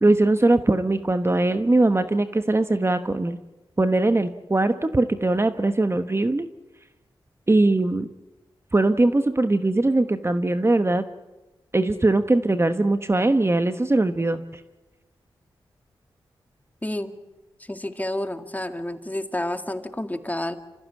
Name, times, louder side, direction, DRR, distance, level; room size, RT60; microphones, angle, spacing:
voice 1, 0.0-3.4 3.8-6.5 7.5-8.1 8.7-11.0 11.7-14.4, right 2 dB, 25° right, 10 dB, 1.1 m, -21 dB
voice 2, 16.8-17.1 17.6-20.6, left 1 dB, 15° left, 8 dB, 2.0 m, -30 dB
27.5 x 14.5 x 8.5 m, 1.1 s
cardioid pair, 45°, 10 cm